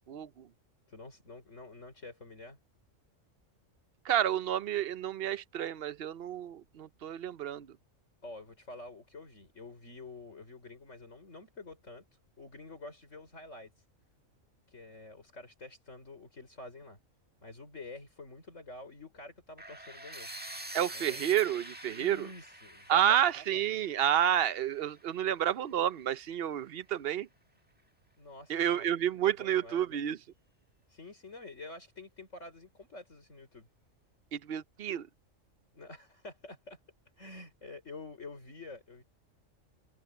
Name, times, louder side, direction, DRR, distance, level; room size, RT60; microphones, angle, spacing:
voice 1, 0.1-0.5 4.0-7.7 20.7-22.3 22.9-27.3 28.5-30.2 34.3-35.1, right 10 dB, 55° right, 0.7 m, -30 dB
voice 2, 0.9-2.6 8.2-12.0 12.4-13.7 14.7-17.0 17.4-20.3 20.9-21.2 21.9-23.3 28.2-28.9 29.2-30.0 30.9-33.7 35.7-36.8 37.2-39.0, left 2 dB, 65° left, 5.5 m, -48 dB
sound 1, 19.6-25.5, right 1 dB, 5° right, 1.5 m, -46 dB
omnidirectional pair, 1.4 m